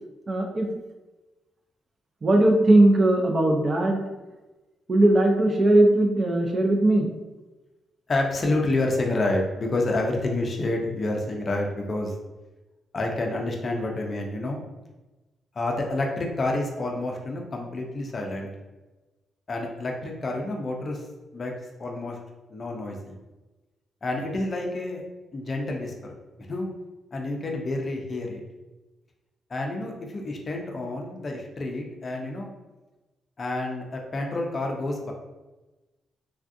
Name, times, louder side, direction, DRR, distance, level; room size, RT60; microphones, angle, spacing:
voice 1, 0.3-0.7 2.2-4.0 4.9-7.1, right 1 dB, 30° right, 2 dB, 0.4 m, -19 dB
voice 2, 8.1-12.1 12.9-14.6 15.5-18.5 19.5-21.1 21.3-21.5 21.8-22.2 22.5-23.2 24.0-25.0 25.3-26.1 26.5-26.7 27.1-28.4 29.5-32.5 33.4-35.1, left 2 dB, 30° left, 1 dB, 0.4 m, -28 dB
3.3 x 2.4 x 2.5 m, 1.1 s
cardioid pair, 150°, 0 cm